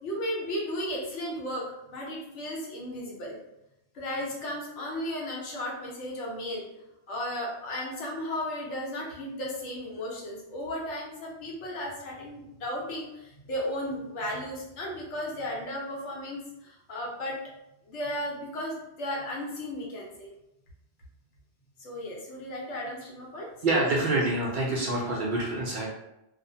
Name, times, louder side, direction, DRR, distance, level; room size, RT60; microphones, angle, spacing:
voice 1, 0.0-3.4 3.9-6.6 7.1-17.4 17.8-20.3 21.8-23.5, left 1 dB, 85° left, -3 dB, 1.1 m, -35 dB
voice 2, 23.6-25.9, right 2 dB, 60° right, -3 dB, 0.5 m, -26 dB
2.4 x 2.1 x 2.6 m, 0.86 s
omnidirectional pair, 1.2 m